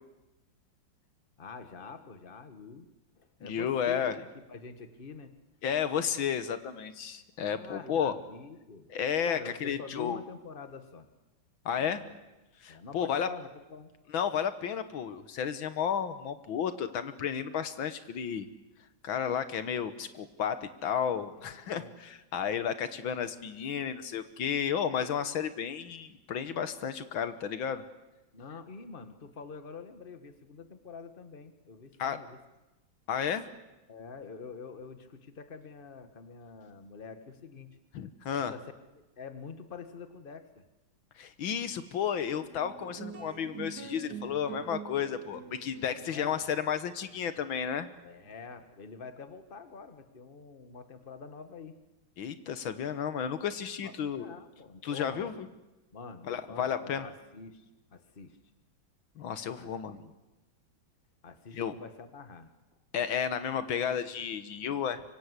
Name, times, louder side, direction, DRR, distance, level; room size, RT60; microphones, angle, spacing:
voice 1, 1.4-2.9 3.2-5.3 7.5-8.9 9.3-11.1 11.8-12.1 12.7-13.9 21.4-22.0 28.3-32.4 33.9-37.7 38.4-40.6 44.0-44.6 46.0-46.4 48.0-51.8 53.8-55.3 55.9-58.4 59.6-59.7 60.0-60.1 61.2-62.5, left 5 dB, 30° left, 8 dB, 1.8 m, -46 dB
voice 2, 3.4-4.2 5.6-8.1 8.9-10.2 11.7-12.0 12.6-13.3 14.1-18.5 19.0-27.8 32.0-32.2 33.1-33.5 37.9-38.5 41.2-47.9 52.2-54.3 54.8-55.5 56.3-57.0 59.2-60.0 61.5-61.7 62.9-65.0, left 8 dB, 85° left, 11 dB, 2.0 m, -32 dB
sound 1, 42.3-48.9, right 6 dB, 55° right, 2.7 m, -46 dB
25.0 x 25.0 x 8.3 m, 1.0 s
omnidirectional pair, 2.1 m